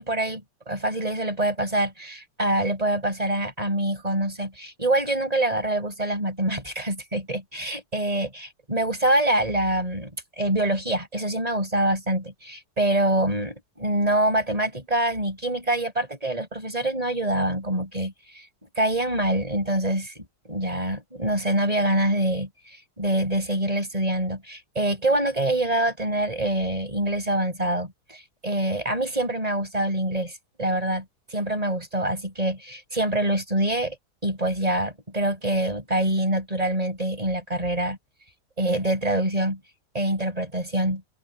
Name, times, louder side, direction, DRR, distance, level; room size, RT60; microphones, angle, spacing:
voice 1, 0.0-18.5 18.8-34.0 34.2-38.0 38.6-39.6 39.9-41.0, right 1 dB, 20° right, 7.3 m, -25 dB
open air
omnidirectional pair, 1.8 m